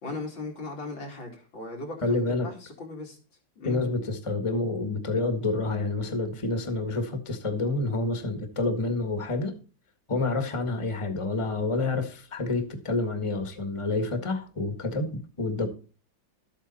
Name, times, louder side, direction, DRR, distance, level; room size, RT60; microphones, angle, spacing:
voice 1, 0.0-3.2 3.6-3.8, left 2 dB, 90° left, 4.0 m, -38 dB
voice 2, 2.0-2.5 3.6-9.5 10.1-15.7, left 2 dB, 15° left, 1.5 m, -28 dB
12.5 x 8.3 x 4.2 m
omnidirectional pair, 2.1 m